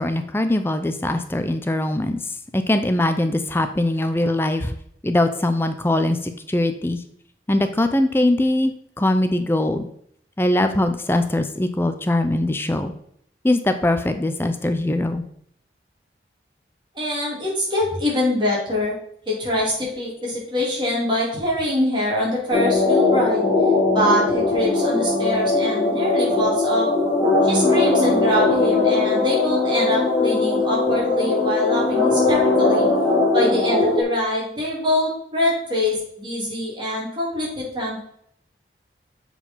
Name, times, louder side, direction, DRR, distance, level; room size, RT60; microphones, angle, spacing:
voice 1, 0.0-2.2 2.5-4.7 5.0-7.0 7.5-9.9 10.4-12.9 13.4-15.2, left 1 dB, 15° left, 8 dB, 0.5 m, -21 dB
voice 2, 16.9-18.9 19.3-23.5 23.9-26.9 27.4-32.9 33.3-38.0, left 1 dB, 25° right, -5 dB, 3.2 m, -24 dB
sound 1, 22.5-34.0, left 3 dB, 5° right, 3.6 m, -19 dB
7.4 x 4.8 x 5.5 m, 0.68 s
head